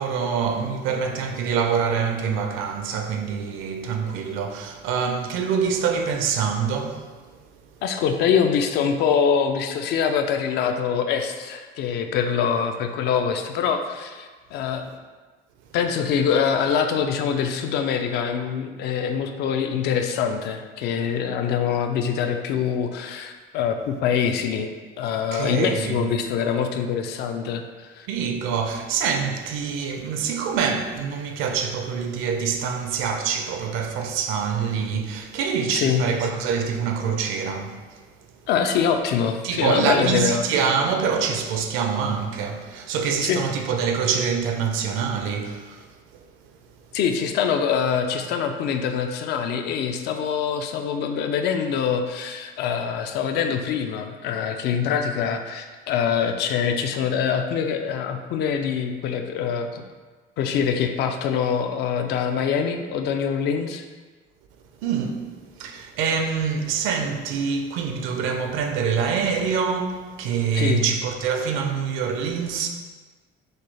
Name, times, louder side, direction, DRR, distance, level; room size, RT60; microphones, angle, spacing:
voice 1, 0.0-7.1 25.0-26.0 28.1-37.8 39.4-45.9 64.8-65.3 65.6-72.7, right 6 dB, 80° right, 0.6 m, -25 dB
voice 2, 7.8-14.9 15.7-24.7 25.0-28.1 35.7-36.1 38.5-40.4 43.2-43.4 46.9-59.8 60.4-63.8 70.5-70.9, left 7 dB, 55° left, 0.4 m, -24 dB
6.4 x 2.3 x 3.2 m
cardioid pair, 170°, 20 cm